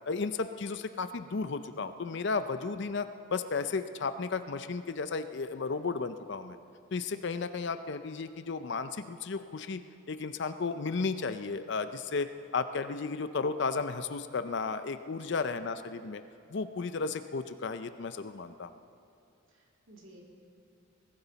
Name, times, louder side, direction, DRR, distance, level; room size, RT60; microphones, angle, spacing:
voice 1, 0.1-6.6 6.9-9.8 10.1-16.2 16.5-18.7, left 4 dB, 60° left, 10 dB, 0.5 m, -34 dB
voice 2, 19.5-20.2, right 1 dB, 70° right, -2 dB, 2.9 m, -55 dB
21.0 x 14.0 x 4.1 m, 2.8 s
head